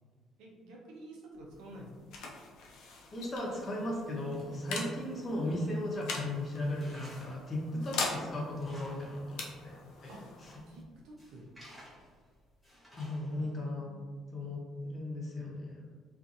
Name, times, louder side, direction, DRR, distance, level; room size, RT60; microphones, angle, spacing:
voice 1, 0.4-1.9 4.8-5.0 7.8-8.0 10.1-10.4 10.7-11.4 13.3-14.6, right 1 dB, 85° right, -2 dB, 0.6 m, -51 dB
sound 1, 1.3-12.7, left 3 dB, 80° left, 0.5 m, -43 dB
voice 2, 3.1-9.7 10.0-10.1 10.4-10.5 12.9-13.9 14.3-15.9, left 1 dB, 40° left, -2 dB, 0.7 m, -36 dB
Tools, 6.8-7.4 7.8-7.9 8.4-9.2 9.5-9.6 10.2-10.7 11.2-12.2 12.6-13.5, equal, ahead, 0.9 m, -54 dB
2.6 x 2.5 x 2.5 m, 1.5 s
cardioid pair, 95°, 0 cm